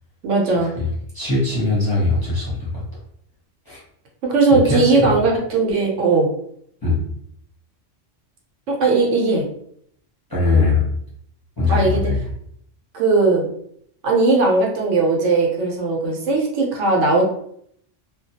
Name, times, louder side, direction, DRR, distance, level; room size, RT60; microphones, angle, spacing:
voice 1, 0.2-0.7 4.2-6.3 8.7-9.5 11.7-12.0 12.9-13.5 14.0-17.2, right 3 dB, 75° right, -1 dB, 0.9 m, -18 dB
voice 2, 1.1-2.8 3.7-3.8 4.5-5.1 6.8-7.0 10.3-10.8 11.6-12.2, left 3 dB, 20° left, -7 dB, 0.7 m, -20 dB
2.2 x 2.1 x 2.7 m, 0.69 s
omnidirectional pair, 1.3 m